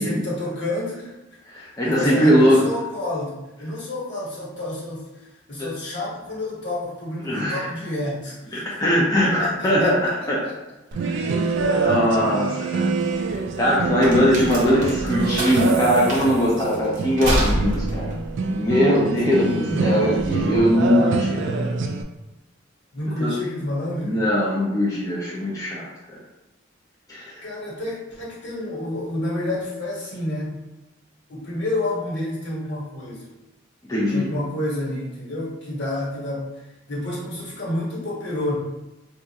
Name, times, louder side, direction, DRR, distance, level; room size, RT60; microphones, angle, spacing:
voice 1, 0.0-1.4 1.8-8.8 9.2-10.5 11.6-12.6 19.2-19.9 22.9-24.2 27.4-30.5 31.3-33.3 34.1-38.5, left 1 dB, 60° left, -5 dB, 1.2 m, -29 dB
voice 2, 1.5-2.7 7.2-7.7 8.5-10.0 10.3-10.4 11.0-12.9 13.3-18.1 18.5-21.8 23.2-23.3 24.0-26.2 27.1-27.4 33.9-34.3, equal, 20° left, -7 dB, 0.5 m, -21 dB
sound 1, 10.9-22.0, right 4 dB, 65° right, 0.3 m, -25 dB
sound 2, 12.7-19.5, right 1 dB, 40° right, 0.8 m, -28 dB
2.5 x 2.3 x 3.9 m, 1.0 s
head